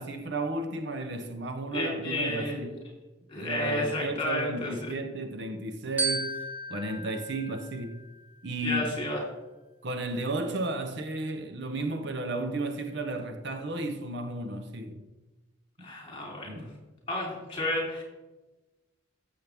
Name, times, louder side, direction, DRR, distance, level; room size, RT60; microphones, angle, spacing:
voice 1, 0.0-2.8 3.4-6.4 6.7-8.0 8.4-8.9 9.8-15.0 16.5-16.7, right 2 dB, 55° right, 0.9 m, -33 dB
voice 2, 1.7-2.7 3.3-4.9 8.6-9.2 15.8-16.6 17.1-18.0, left 1 dB, 25° left, 3.9 m, -31 dB
Glockenspiel, 6.0-8.5, right 2 dB, 10° right, 2.2 m, -35 dB
14.0 x 7.6 x 3.5 m
head